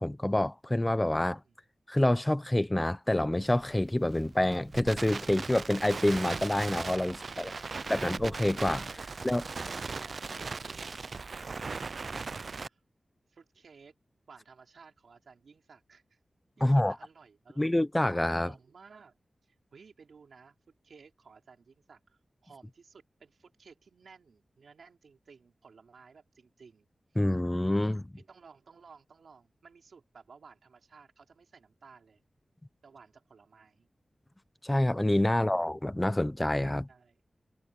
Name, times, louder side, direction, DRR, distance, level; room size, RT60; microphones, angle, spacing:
voice 1, 0.0-1.4 1.9-7.5 7.9-8.9 9.2-9.4 16.6-16.9 17.6-18.5 27.2-28.1 34.6-36.9, left 1 dB, 15° left, 0.9 m, -27 dB
voice 2, 1.2-1.6 7.1-8.1 9.0-9.1 9.7-10.9 11.4-12.1 12.7-12.8 13.3-14.0 14.3-16.2 16.6-17.8 18.4-20.6 20.8-27.2 28.2-32.2 32.8-33.9 36.9-37.2, right 5 dB, 90° right, 4.4 m, -56 dB
Crackle, 3.4-12.7, right 4 dB, 65° right, 0.5 m, -38 dB
cardioid pair, 60°, 0 cm